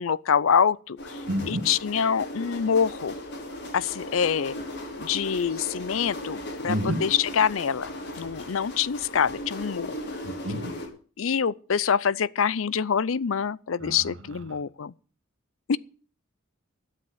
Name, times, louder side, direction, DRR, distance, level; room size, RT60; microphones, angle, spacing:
voice 1, 0.0-1.2 1.5-3.1 3.7-4.6 5.0-7.9 8.2-10.0 11.2-14.9 15.7-15.8, left 7 dB, 75° left, 0.6 m, -25 dB
sound 1, 1.0-10.9, left 1 dB, 60° left, 4.8 m, -37 dB
voice 2, 1.3-1.6 6.7-7.0 10.2-10.7 13.8-14.0, right 1 dB, 65° right, 2.1 m, -29 dB
13.0 x 8.3 x 8.7 m
head